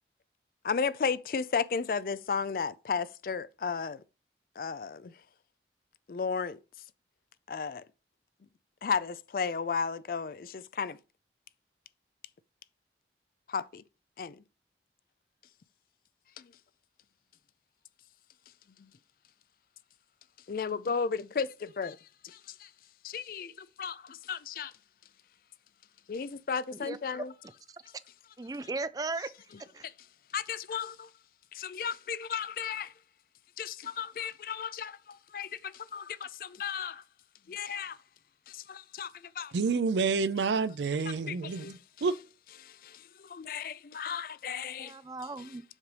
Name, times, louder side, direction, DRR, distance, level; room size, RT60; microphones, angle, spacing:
voice 1, 0.6-4.0 4.6-5.2 6.1-6.6 7.5-7.8 8.8-11.0 13.5-13.8 14.2-14.4 16.4-16.5 18.8-18.9 20.5-22.7 23.0-24.7 26.1-27.3 27.8-27.9 29.8-29.9 30.3-31.1 31.5-32.9 33.6-37.0 37.5-38.0 38.5-39.5 41.3-41.7 42.6-45.0 45.4-45.6, left 6 dB, 55° left, 0.4 m, -34 dB
voice 2, 26.8-27.2 27.7-27.8 28.4-29.3 29.7-29.8 44.8-45.6, right 3 dB, 20° right, 0.3 m, -37 dB
voice 3, 39.5-42.2, right 4 dB, 85° right, 0.4 m, -29 dB
7.3 x 3.3 x 5.2 m
head